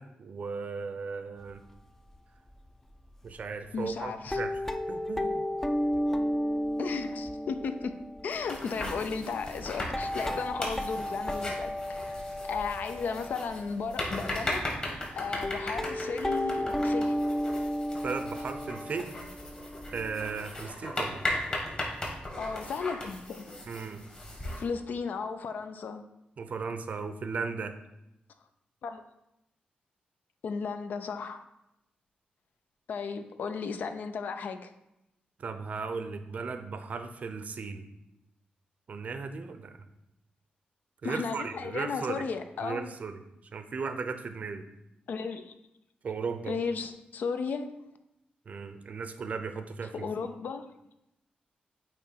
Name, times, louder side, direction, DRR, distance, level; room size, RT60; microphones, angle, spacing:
voice 1, 0.0-1.6 3.2-4.6 4.9-5.5 5.9-6.0 18.0-19.1 19.9-21.2 23.7-24.0 26.4-27.8 35.4-37.9 38.9-39.9 41.0-42.2 42.6-43.2 43.5-44.7 46.0-46.6 48.5-50.1, right 5 dB, 50° right, 9 dB, 0.6 m, -36 dB
sound 1, 1.5-1.8 2.1-2.2 2.7-2.8 3.3-3.4 4.1-14.1 14.7-14.8 15.0-15.1 15.4-20.4, left 1 dB, 10° left, 0.4 m, -33 dB
voice 2, 3.7-4.4 6.8-7.9 8.2-11.7 12.4-14.7 15.2-17.2 22.4-23.5 24.6-26.0 28.8-29.0 30.4-31.4 32.9-34.7 41.0-42.9 45.1-45.5 46.5-47.8 49.9-50.7, left 5 dB, 70° left, 9 dB, 0.5 m, -35 dB
sound 2, 8.3-24.6, left 1 dB, 35° left, 1.9 m, -37 dB
8.5 x 3.1 x 4.5 m, 0.87 s
cardioid pair, 110°, 3 cm